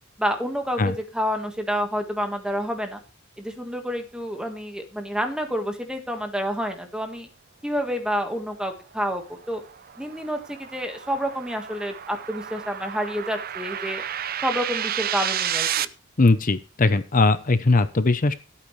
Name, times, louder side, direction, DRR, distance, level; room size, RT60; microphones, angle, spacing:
voice 1, 0.2-3.0 3.4-7.3 7.6-9.6 10.0-14.0 14.4-15.9, equal, 5° right, 5 dB, 1.6 m, -28 dB
sound 1, 9.0-15.8, right 10 dB, 45° right, 0.6 m, -31 dB
voice 2, 16.2-18.4, left 3 dB, 40° left, 13 dB, 0.7 m, -20 dB
15.5 x 8.7 x 3.2 m, 0.34 s
head